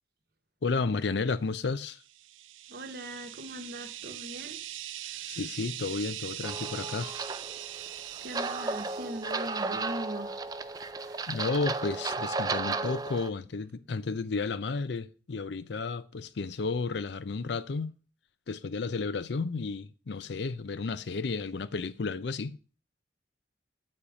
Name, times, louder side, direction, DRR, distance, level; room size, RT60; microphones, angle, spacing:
voice 1, 0.6-2.0 5.3-7.2 11.3-17.9 18.5-22.5, left 4 dB, 65° left, 0.5 m, -32 dB
sound 1, 2.0-9.8, right 13 dB, 90° right, 0.5 m, -42 dB
voice 2, 2.7-4.6 5.1-5.4 8.2-11.3, right 1 dB, 50° right, 1.0 m, -41 dB
sound 2, 6.4-13.3, right 3 dB, 20° right, 0.3 m, -34 dB
8.5 x 4.3 x 4.9 m
head